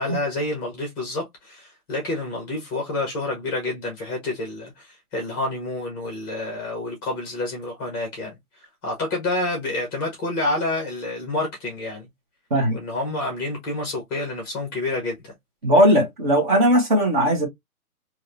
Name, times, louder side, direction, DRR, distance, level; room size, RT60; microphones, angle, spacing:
voice 1, 0.0-8.3 8.8-12.1 12.7-15.3, left 2 dB, 15° left, 1.0 m, -28 dB
voice 2, 15.6-17.5, equal, 35° right, 1.1 m, -18 dB
3.2 x 2.8 x 2.5 m
hypercardioid pair, 155°, 44 cm